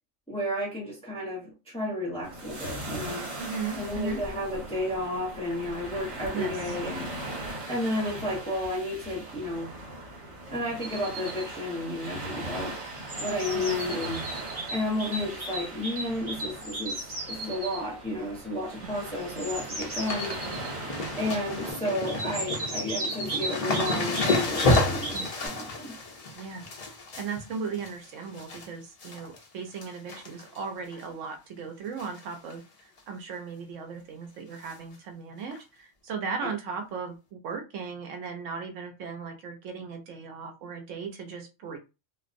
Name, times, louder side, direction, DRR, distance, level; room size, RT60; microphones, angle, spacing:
voice 1, 0.3-3.2 3.7-7.1 7.7-9.7 10.5-12.8 13.2-14.2 14.7-20.4 21.2-25.9, left 1 dB, 5° left, -4 dB, 0.7 m, -32 dB
sound 1, 2.2-21.7, right 1 dB, 65° right, 1.4 m, -39 dB
voice 2, 3.4-4.2 6.3-6.8 13.5-13.8 18.8-18.9 25.1-25.3 26.3-26.6 27.2-41.8, right 5 dB, 80° right, 5 dB, 1.0 m, -37 dB
Blue Tit and Great Tit, 10.8-11.5 12.6-17.8 19.2-20.7 22.1-25.5, right 2 dB, 40° right, 0.7 m, -36 dB
sound 2, 18.9-19.2 19.4-28.7 29.0-29.4 29.7-30.6 30.9-31.0 32.0-32.2 32.5-32.6 33.0-33.1 34.7-34.8 35.5-35.6, left 2 dB, 65° left, 0.3 m, -30 dB
2.5 x 2.0 x 2.5 m, 0.28 s
omnidirectional pair, 1.3 m